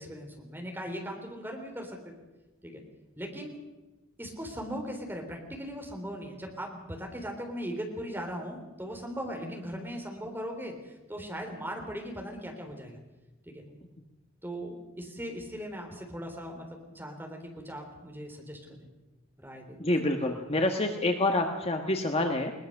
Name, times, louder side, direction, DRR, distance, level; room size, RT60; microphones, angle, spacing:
voice 1, 0.0-2.1 2.6-2.8 3.2-3.6 4.2-10.8 11.1-13.0 13.5-13.6 14.4-18.8 19.4-19.8, equal, 10° right, 2 dB, 3.6 m, -39 dB
voice 2, 19.8-22.5, left 2 dB, 30° left, 4 dB, 1.4 m, -27 dB
21.5 x 19.5 x 6.5 m, 1.1 s
head